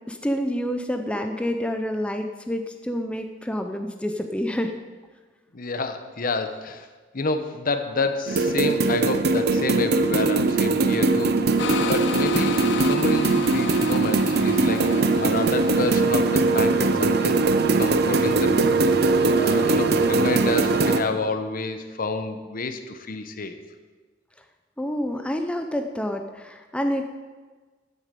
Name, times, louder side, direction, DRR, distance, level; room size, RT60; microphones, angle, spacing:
voice 1, 0.1-4.8 24.8-27.1, equal, 5° left, 5 dB, 0.6 m, -28 dB
voice 2, 5.5-6.9 7.1-14.9 15.2-17.4 17.8-18.5 19.4-23.5, left 3 dB, 50° left, 8 dB, 0.9 m, -29 dB
sound 1, 8.3-21.0, right 3 dB, 60° right, 0.7 m, -21 dB
sound 2, 11.6-17.0, left 7 dB, 65° left, 0.5 m, -33 dB
11.0 x 8.4 x 6.8 m, 1.4 s
head